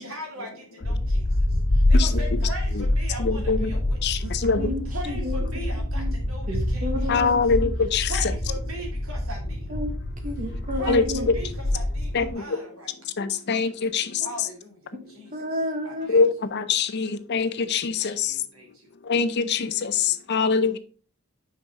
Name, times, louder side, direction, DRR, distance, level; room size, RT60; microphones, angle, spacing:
voice 1, 0.0-4.3 4.8-7.2 8.1-9.8 10.4-12.9 14.2-16.2 18.0-18.9, right 1 dB, 80° right, 2.6 m, -40 dB
nuclear rain slower-bass, 0.8-12.3, left 1 dB, 80° left, 1.1 m, -26 dB
voice 2, 1.9-2.4 2.7-2.9 3.2-3.7 4.0-4.7 7.1-8.3 10.9-11.3 12.1-12.4 13.2-14.1 16.1-18.3 19.1-20.8, left 5 dB, 55° left, 0.5 m, -24 dB
voice 3, 4.6-5.5 5.9-6.1 6.5-7.4 9.7-11.3 14.9-16.1, left 1 dB, 40° right, 1.2 m, -31 dB
5.8 x 4.7 x 3.9 m
head